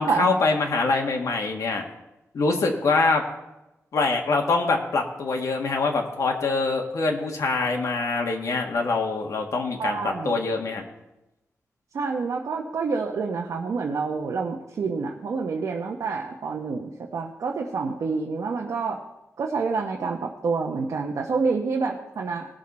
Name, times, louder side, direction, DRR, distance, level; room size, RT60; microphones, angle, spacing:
voice 1, 0.0-1.8 2.3-3.2 3.9-10.8, left 3 dB, 80° left, 2 dB, 1.6 m, -24 dB
voice 2, 9.8-10.4 11.9-19.0 19.4-22.5, right 4 dB, 80° right, 0 dB, 0.9 m, -28 dB
19.0 x 6.5 x 4.2 m, 0.95 s
wide cardioid pair, 170°, 5 cm